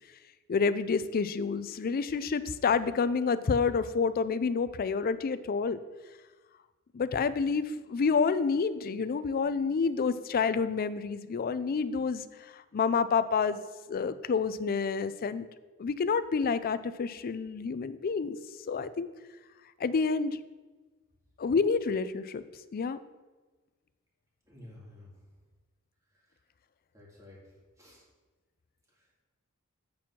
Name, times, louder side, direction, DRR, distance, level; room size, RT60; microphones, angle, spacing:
voice 1, 0.5-5.8 6.9-12.2 12.5-13.6 13.9-15.5 15.8-18.4 18.7-19.1 19.8-20.4 21.4-22.4 22.7-23.0, left 5 dB, 45° left, 14 dB, 0.4 m, -28 dB
voice 2, 24.5-25.1 26.3-26.4 26.9-28.0, left 1 dB, 15° right, -4 dB, 2.5 m, -52 dB
8.4 x 4.5 x 5.9 m, 1.3 s
head